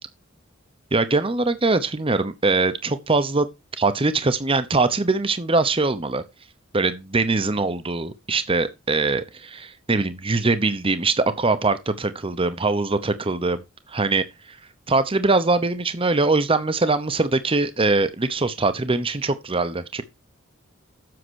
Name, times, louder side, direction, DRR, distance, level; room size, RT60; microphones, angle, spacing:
voice 1, 0.9-3.5 3.8-6.2 6.7-13.6 13.9-14.6 14.9-20.0, right 3 dB, 25° right, 0.9 m, -22 dB
7.8 x 6.7 x 6.3 m
head